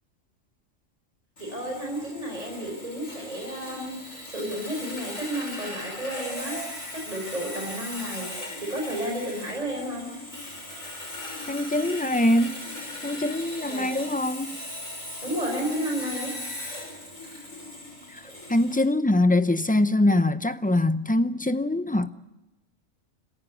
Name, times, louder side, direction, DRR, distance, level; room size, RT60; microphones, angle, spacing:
Sawing, 1.4-18.9, left 1 dB, 70° left, 6.4 m, -38 dB
voice 1, 1.4-4.0 4.3-8.3 8.6-10.1 13.7-13.9 15.2-16.3 18.2-18.3, right 1 dB, 30° right, 5.0 m, -32 dB
voice 2, 11.5-12.6 13.0-14.5 18.1-18.2 18.5-22.1, left 1 dB, 10° left, 0.5 m, -23 dB
27.0 x 15.0 x 8.4 m
omnidirectional pair, 1.4 m